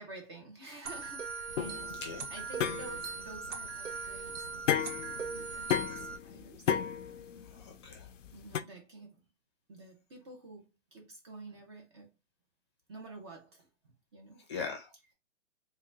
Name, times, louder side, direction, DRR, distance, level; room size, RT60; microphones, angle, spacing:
voice 1, 0.0-5.0 5.3-6.7 7.1-7.2 8.3-9.3 9.7-12.2 12.9-14.4, right 2 dB, 20° right, 0.6 m, -50 dB
sound 1, 0.8-6.2, right 5 dB, 70° right, 0.8 m, -40 dB
sound 2, 1.5-8.6, left 9 dB, 80° left, 0.6 m, -34 dB
voice 2, 7.5-8.1 14.5-15.1, left 5 dB, 25° left, 0.6 m, -41 dB
3.8 x 2.2 x 3.2 m
hypercardioid pair, 155°, 37 cm